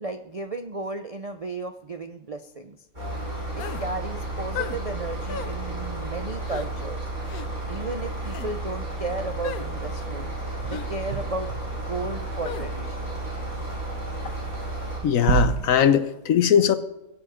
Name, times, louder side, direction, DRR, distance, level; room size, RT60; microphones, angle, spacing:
voice 1, 0.0-2.8 3.5-7.1 7.7-10.3 10.7-11.5 11.9-13.1, right 3 dB, 50° right, 0.4 m, -34 dB
sound 1, 2.9-15.0, right 2 dB, 30° right, 7.2 m, -32 dB
sound 2, 3.6-3.9 4.5-4.8 5.3-5.5 6.4-6.7 7.3-7.5 8.2-8.5 9.4-9.7 10.7-10.9 12.4-12.7, left 7 dB, 85° left, 1.4 m, -34 dB
sound 3, 5.4-15.8, right 12 dB, 80° right, 1.2 m, -35 dB
voice 2, 15.0-16.8, left 9 dB, 70° left, 1.2 m, -20 dB
22.5 x 7.8 x 5.0 m
omnidirectional pair, 1.5 m